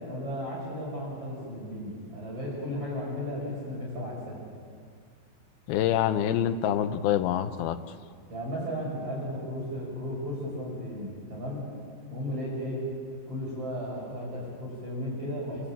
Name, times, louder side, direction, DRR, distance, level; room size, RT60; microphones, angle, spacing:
voice 1, 0.0-4.4 8.3-11.7 12.1-12.9 13.3-15.7, equal, 35° right, -5 dB, 7.1 m, -35 dB
voice 2, 5.7-7.8, left 10 dB, 75° left, 8 dB, 2.5 m, -26 dB
28.0 x 15.0 x 8.7 m, 2.1 s
omnidirectional pair, 5.0 m